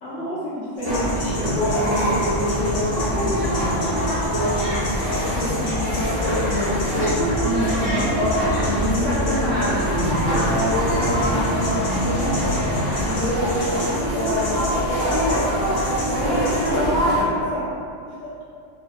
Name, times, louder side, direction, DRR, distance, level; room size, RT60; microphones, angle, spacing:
voice 1, 0.0-1.2 1.7-3.4 3.9-7.2 8.5-9.6 10.3-12.5 13.0-15.4 16.1-17.7 18.1-18.2, equal, 75° left, -9 dB, 0.9 m, -27 dB
sound 1, 0.8-16.7, left 1 dB, 55° left, 0.4 m, -36 dB
sound 2, 0.8-17.2, equal, 20° right, 0.6 m, -23 dB
voice 2, 7.4-8.4 8.8-10.1 16.6-17.3, right 1 dB, 65° right, -10 dB, 0.9 m, -28 dB
2.7 x 2.1 x 2.3 m, 2.3 s
omnidirectional pair, 1.3 m